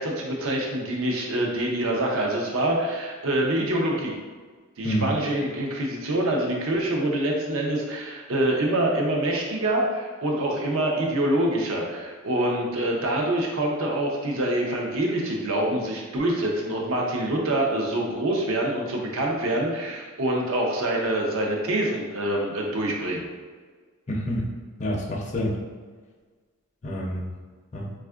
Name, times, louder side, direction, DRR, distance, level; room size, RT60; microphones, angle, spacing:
voice 1, 0.0-4.2 4.8-23.2, right 1 dB, 65° right, 0 dB, 0.6 m, -25 dB
voice 2, 24.1-24.5 24.8-25.6 26.8-27.3 27.7-27.9, equal, 35° left, -3 dB, 0.5 m, -27 dB
4.2 x 2.4 x 2.3 m, 1.5 s
head